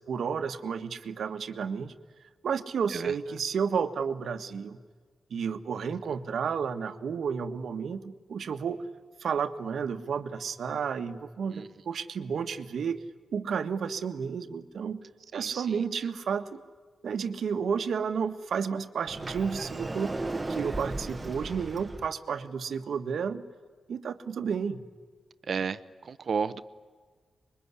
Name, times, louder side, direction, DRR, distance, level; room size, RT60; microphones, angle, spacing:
voice 1, 0.1-1.9 2.4-4.8 5.3-8.8 9.2-13.0 13.3-15.0 15.3-16.6 17.0-20.2 20.5-23.4 23.9-24.9, right 6 dB, 80° right, 8 dB, 1.5 m, -31 dB
voice 2, 15.3-15.8 25.5-26.6, right 6 dB, 60° right, 13 dB, 1.0 m, -33 dB
Sliding door, 19.1-22.1, right 2 dB, 20° right, 1.4 m, -35 dB
26.0 x 22.5 x 9.8 m, 1.5 s
wide cardioid pair, 100°, 0 cm